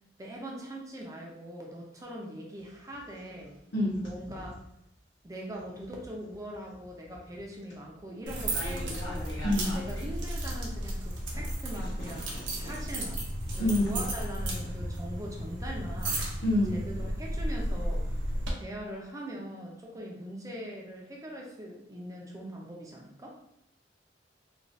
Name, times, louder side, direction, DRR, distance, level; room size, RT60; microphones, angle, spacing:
voice 1, 0.2-3.6 4.0-4.6 5.2-9.4 9.7-13.2 13.5-16.2 16.7-18.2 18.5-23.4, equal, 20° right, -1 dB, 0.5 m, -41 dB
sound 1, 2.6-4.7 5.3-10.9 11.3-14.7, left 1 dB, 85° left, 1.1 m, -45 dB
voice 2, 3.7-4.1 9.4-9.8 13.6-14.0 16.4-16.9, left 1 dB, 55° left, -5 dB, 0.9 m, -27 dB
sound 2, 8.3-18.5, right 1 dB, 75° right, 0.7 m, -34 dB
3.0 x 2.3 x 2.6 m, 0.79 s
head